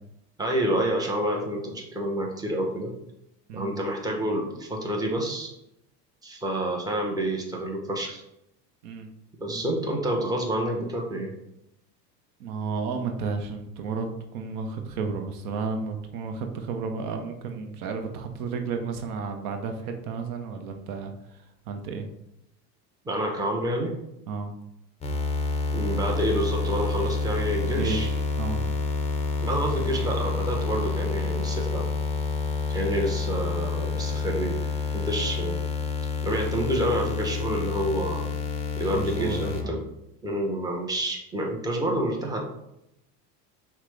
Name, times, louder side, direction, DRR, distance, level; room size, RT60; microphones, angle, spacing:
voice 1, 0.4-2.9 3.5-5.5 6.2-8.2 9.4-11.4 23.0-23.9 25.7-28.1 29.4-31.9 32.7-34.6 34.9-35.6 36.2-38.3 38.8-39.8 40.2-42.4, right 1 dB, 10° right, 0 dB, 0.9 m, -28 dB
voice 2, 12.4-22.1 24.3-24.5 27.6-28.7 38.9-39.8, right 4 dB, 65° right, 5 dB, 0.8 m, -32 dB
sound 1, 25.0-39.6, left 4 dB, 15° left, 0.5 m, -28 dB
5.8 x 2.3 x 3.3 m, 0.84 s
hypercardioid pair, 95°, 49 cm